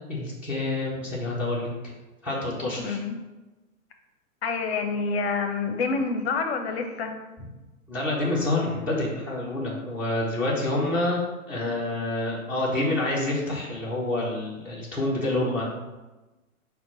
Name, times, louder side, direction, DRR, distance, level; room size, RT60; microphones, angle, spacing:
voice 1, 0.1-1.7 2.2-3.0 7.9-11.2 11.5-15.6, left 2 dB, 5° right, -10 dB, 0.5 m, -27 dB
voice 2, 2.8-3.2 4.4-7.2, left 4 dB, 50° left, 6 dB, 0.6 m, -27 dB
5.7 x 2.2 x 4.2 m, 1.1 s
figure-of-eight pair, 115°, 42 cm